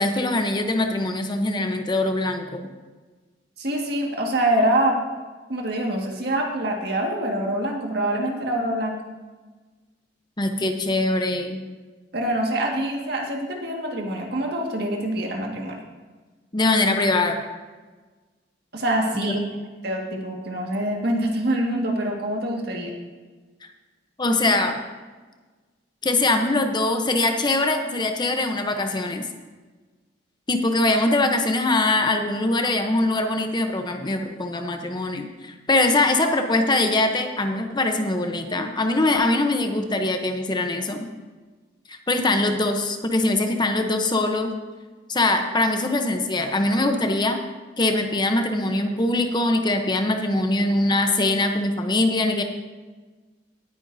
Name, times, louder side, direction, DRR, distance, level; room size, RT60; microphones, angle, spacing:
voice 1, 0.0-2.7 10.4-11.6 16.5-17.4 19.1-19.5 24.2-24.8 26.0-29.2 30.5-41.1 41.9-44.5 45.1-47.4 47.8-52.4, left 2 dB, 25° left, 5 dB, 0.8 m, -22 dB
voice 2, 3.6-5.0 5.5-9.0 12.1-15.8 18.7-19.5 19.8-22.9, right 1 dB, 60° right, 0 dB, 1.8 m, -25 dB
18.0 x 9.0 x 2.7 m, 1.3 s
head